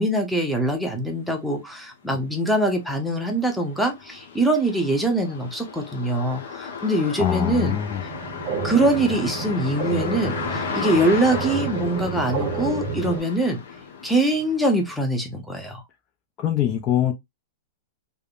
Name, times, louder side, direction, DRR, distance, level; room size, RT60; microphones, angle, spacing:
voice 1, 0.0-7.8 8.6-13.6 14.0-15.8, right 1 dB, ahead, 0.7 m, -23 dB
sound 1, 1.6-1.7 2.1-15.0, left 5 dB, 70° left, 0.8 m, -35 dB
voice 2, 7.2-8.0 16.4-17.1, left 11 dB, 35° left, 0.4 m, -23 dB
sound 2, 8.0-13.2, right 5 dB, 40° right, 0.7 m, -30 dB
3.4 x 2.1 x 2.4 m
hypercardioid pair, 140°, 0 cm